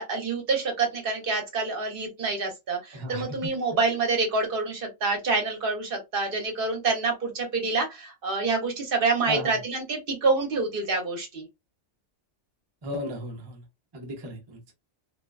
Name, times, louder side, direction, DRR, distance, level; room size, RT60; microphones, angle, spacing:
voice 1, 0.0-11.4, right 3 dB, 55° right, 0.9 m, -27 dB
voice 2, 2.9-3.3 9.3-9.5 12.8-13.6 13.9-14.6, right 1 dB, 30° right, 0.5 m, -34 dB
2.5 x 2.2 x 2.2 m
omnidirectional pair, 1.2 m